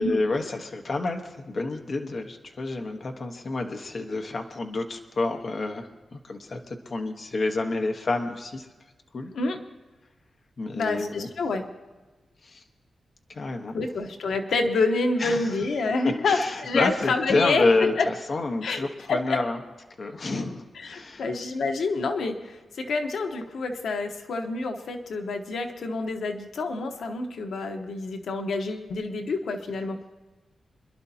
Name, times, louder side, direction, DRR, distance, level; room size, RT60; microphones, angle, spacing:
voice 1, 0.0-8.7 9.1-9.3 10.6-11.3 12.4-12.6 13.3-13.8 15.2-15.6 16.3-19.6 20.0-21.3, left 3 dB, 45° left, 4 dB, 1.1 m, -29 dB
voice 2, 10.7-11.6 13.7-17.7 18.0-18.1 18.6-19.4 20.7-30.0, left 3 dB, 85° left, 5 dB, 1.1 m, -28 dB
26.5 x 11.5 x 2.8 m, 1.2 s
wide cardioid pair, 150°, 0 cm